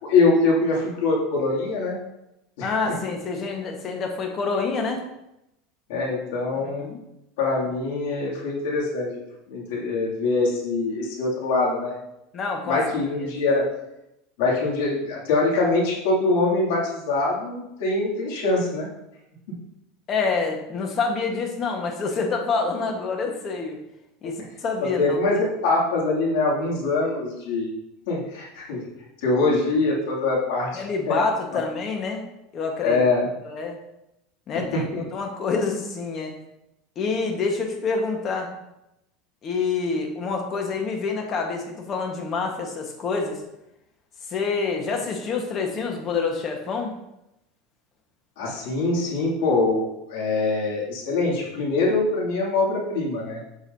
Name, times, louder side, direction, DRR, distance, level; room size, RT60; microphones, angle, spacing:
voice 1, 0.0-2.0 2.6-2.9 5.9-6.9 7.4-9.2 9.5-12.0 12.7-13.7 14.4-18.9 24.8-27.7 28.1-28.8 29.2-31.2 31.5-31.6 32.8-33.3 34.7-35.0 48.4-53.4, left 3 dB, 75° left, -3 dB, 2.5 m, -23 dB
voice 2, 2.6-5.0 6.6-7.0 12.3-12.8 13.2-13.3 20.1-23.8 24.2-25.2 30.7-32.2 32.5-33.0 33.4-33.8 34.5-36.3 37.0-38.5 39.4-43.4 44.3-46.9, left 4 dB, 30° left, 3 dB, 1.3 m, -27 dB
7.6 x 6.4 x 2.7 m, 0.87 s
supercardioid pair, 145°, 0 cm